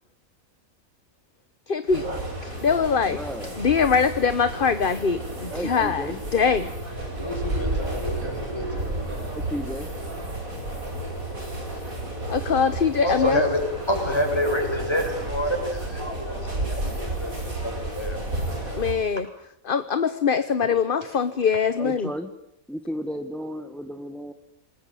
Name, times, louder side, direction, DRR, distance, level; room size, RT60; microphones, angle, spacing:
voice 1, 1.7-2.1 2.4-3.2 3.6-6.1 6.3-6.7 12.3-13.4 18.8-19.3 19.6-22.1, left 6 dB, 40° left, 12 dB, 1.3 m, -22 dB
sound 1, 1.9-18.9, right 1 dB, 80° right, 7.9 m, -32 dB
voice 2, 3.1-3.6 5.5-6.2 8.7-8.8 9.3-9.9 21.8-22.3 22.7-24.3, equal, ahead, 7 dB, 1.6 m, -33 dB
voice 3, 7.1-9.2 12.5-12.6 13.0-18.8 20.6-20.8, left 1 dB, 20° left, 2 dB, 7.7 m, -28 dB
27.0 x 21.5 x 9.3 m, 0.72 s
omnidirectional pair, 1.4 m